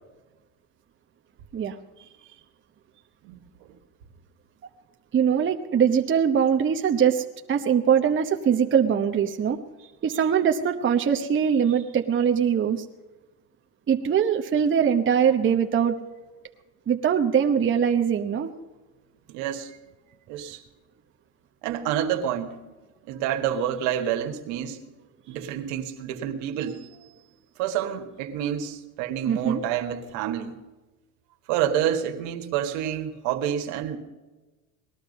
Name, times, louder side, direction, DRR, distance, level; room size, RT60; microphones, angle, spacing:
voice 1, 5.1-9.6 10.0-12.8 13.9-16.0 16.9-18.5 29.3-29.6, right 8 dB, 25° right, 1.0 m, -22 dB
voice 2, 19.3-19.7 20.3-20.6 21.6-22.5 23.0-24.8 25.3-26.8 27.6-30.6 31.5-34.0, right 10 dB, 70° right, 1.9 m, -28 dB
19.0 x 12.0 x 5.4 m
supercardioid pair, 105°, 46 cm